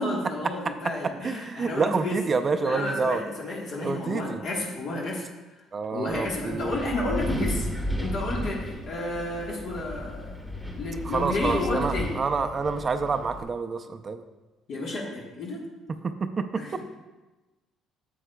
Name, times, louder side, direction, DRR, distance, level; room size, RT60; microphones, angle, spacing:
voice 1, 0.0-2.2 2.6-5.2 5.9-7.7 8.0-10.3 10.7-12.1 14.7-15.6 16.6-16.7, left 2 dB, 60° left, -3 dB, 1.4 m, -31 dB
voice 2, 1.0-3.2 3.8-4.4 5.7-6.8 11.0-14.2 16.0-16.8, right 4 dB, 30° right, 8 dB, 0.4 m, -28 dB
Wind, 6.1-13.4, equal, 5° left, 1.2 m, -34 dB
9.4 x 7.8 x 2.2 m, 1.1 s
cardioid pair, 120°, 0 cm